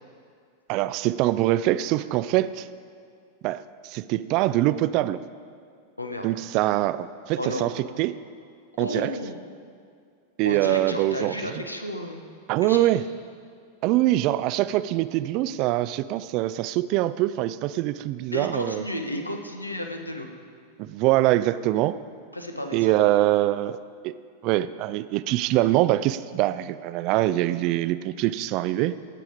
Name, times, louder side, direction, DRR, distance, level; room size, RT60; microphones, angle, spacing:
voice 1, 0.7-2.7 3.4-5.2 6.2-8.2 8.8-9.2 10.4-11.4 12.5-13.1 13.8-18.8 20.8-22.0 22.7-23.8 24.0-24.1 24.4-28.9, right 15 dB, 40° right, 15 dB, 0.4 m, -24 dB
voice 2, 6.0-6.3 7.4-7.6 8.8-9.4 10.4-12.2 12.6-12.9 18.3-20.3 22.3-23.0, left 1 dB, 85° left, 4 dB, 1.0 m, -32 dB
17.0 x 7.0 x 4.9 m, 2.2 s
figure-of-eight pair, 90°, 0 cm